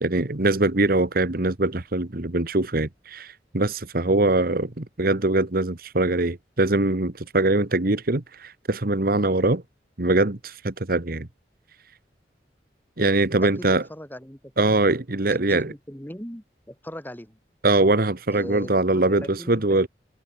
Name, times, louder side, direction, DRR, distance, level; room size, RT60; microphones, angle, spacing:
voice 1, 0.0-9.6 10.0-11.3 13.0-13.8 14.6-15.7 17.6-19.9, right 2 dB, 55° right, 1.4 m, -22 dB
voice 2, 13.4-14.4 15.3-17.4 18.3-19.9, equal, 10° left, 3.9 m, -39 dB
head